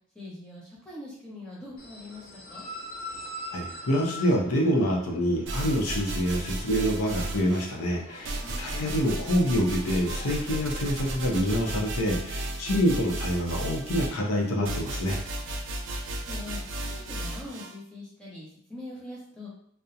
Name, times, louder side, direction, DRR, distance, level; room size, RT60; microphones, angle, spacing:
voice 1, 0.1-2.7 8.4-8.8 16.3-16.6 16.9-19.5, left 2 dB, 5° left, -7 dB, 0.7 m, -42 dB
sound 1, 1.8-11.4, left 1 dB, 45° left, 0.4 m, -44 dB
voice 2, 3.5-15.2, equal, 90° left, -1 dB, 0.6 m, -26 dB
sound 2, 5.5-7.8 8.2-17.7, right 2 dB, 55° right, 0.3 m, -34 dB
2.4 x 2.0 x 2.7 m, 0.65 s
head